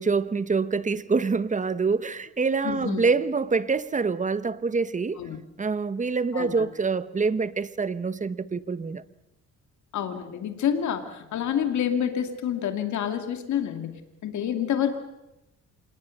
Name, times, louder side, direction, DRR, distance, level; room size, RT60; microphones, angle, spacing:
voice 1, 0.0-5.2 5.6-9.0, right 4 dB, 25° right, 1.1 m, -26 dB
voice 2, 2.6-3.0 5.2-5.4 6.3-6.6 9.9-15.0, left 9 dB, 70° left, 2.5 m, -28 dB
27.0 x 20.0 x 6.6 m
cardioid pair, 90°, 30 cm